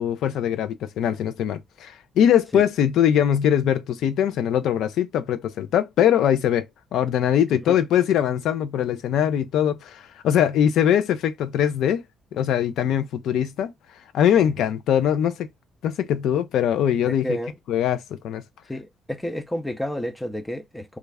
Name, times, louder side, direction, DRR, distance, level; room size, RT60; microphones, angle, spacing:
voice 1, 0.0-6.6 6.9-12.0 12.3-13.7 14.1-15.3 15.8-17.4 17.7-18.4, left 9 dB, 80° left, 0.4 m, -22 dB
voice 2, 17.1-17.5 18.7-21.0, equal, 5° left, 0.5 m, -30 dB
3.1 x 2.4 x 3.3 m
cardioid pair, 140°, 0 cm